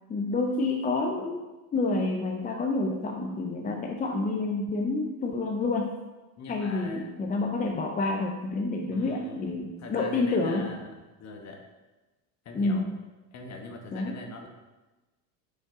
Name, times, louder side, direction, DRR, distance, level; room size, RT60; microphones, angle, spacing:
voice 1, 0.1-1.4 1.7-5.9 6.5-10.7 12.5-12.9 13.9-14.1, left 3 dB, 20° left, 1 dB, 0.5 m, -28 dB
voice 2, 6.4-7.1 8.9-11.6 12.4-12.9 13.3-14.5, left 3 dB, 40° left, 3 dB, 1.1 m, -42 dB
5.7 x 5.4 x 3.7 m, 1.1 s
supercardioid pair, 115°, 43 cm